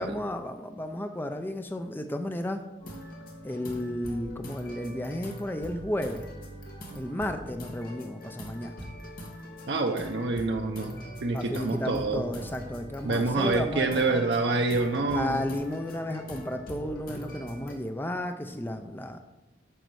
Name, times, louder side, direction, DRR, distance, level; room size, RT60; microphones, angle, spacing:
voice 1, 0.0-2.6 3.4-6.3 6.9-8.7 11.3-14.2 15.1-19.2, left 1 dB, 10° left, 6 dB, 0.4 m, -33 dB
sound 1, 2.8-17.7, equal, 50° left, 1.8 m, -42 dB
voice 2, 9.7-10.9 11.2-12.2 13.0-15.4, right 3 dB, 65° right, 3 dB, 0.7 m, -27 dB
9.1 x 6.4 x 4.7 m, 1.1 s
head